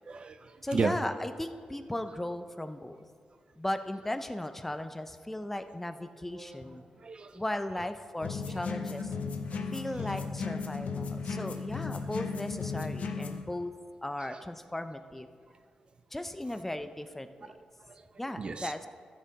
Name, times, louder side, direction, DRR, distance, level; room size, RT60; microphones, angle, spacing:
voice 1, 0.1-0.9 7.0-7.4 8.5-8.6 9.5-9.7 10.1-10.3 14.3-14.4 17.5-17.6 17.9-18.7, right 4 dB, 40° right, 10 dB, 0.4 m, -35 dB
voice 2, 0.6-3.0 3.6-6.8 7.3-9.1 9.7-13.7 14.0-15.3 16.1-17.5 18.2-18.9, left 1 dB, 10° left, 9 dB, 0.6 m, -36 dB
sound 1, 5.6-5.7 6.3-7.4 8.4-8.8 9.4-9.5 9.7-10.2 10.5-10.6 11.1-11.8, right 1 dB, 85° right, 2.2 m, -57 dB
sound 2, 8.2-13.4, left 5 dB, 70° left, 0.8 m, -35 dB
14.0 x 6.6 x 4.1 m, 2.1 s
cardioid pair, 90°, 2 cm